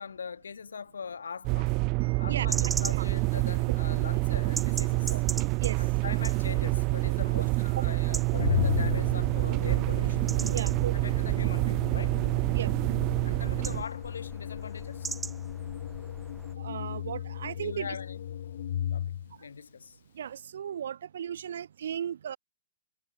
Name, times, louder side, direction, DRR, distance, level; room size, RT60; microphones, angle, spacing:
voice 1, 0.0-1.8 2.2-5.2 5.8-10.4 10.9-12.2 13.2-15.2 17.5-18.2 18.9-20.0, left 6 dB, 85° left, 7.3 m, -41 dB
sound 1, 1.4-13.8, right 29 dB, 40° right, 0.5 m, -27 dB
voice 2, 2.0-3.0 5.1-5.2 5.6-5.8 7.8-7.9 10.5-11.1 12.5-12.7 16.6-17.9 20.2-22.4, right 9 dB, 70° right, 7.0 m, -36 dB
sound 2, 2.5-16.5, right 4 dB, 10° right, 5.3 m, -42 dB
Organ, 8.3-19.3, left 10 dB, 70° left, 4.6 m, -35 dB
hypercardioid pair, 120°, 0 cm